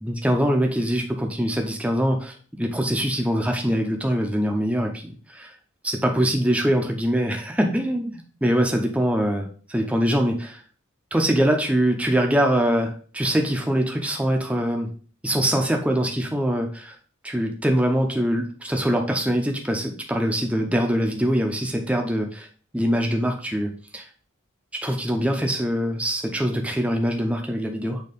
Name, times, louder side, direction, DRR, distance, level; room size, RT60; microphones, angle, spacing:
voice 1, 0.0-5.5 5.8-10.6 11.1-14.9 15.2-16.9 17.2-22.5 22.7-24.1 24.8-28.0, equal, 5° right, 3 dB, 0.8 m, -23 dB
6.7 x 3.0 x 5.2 m, 0.42 s
head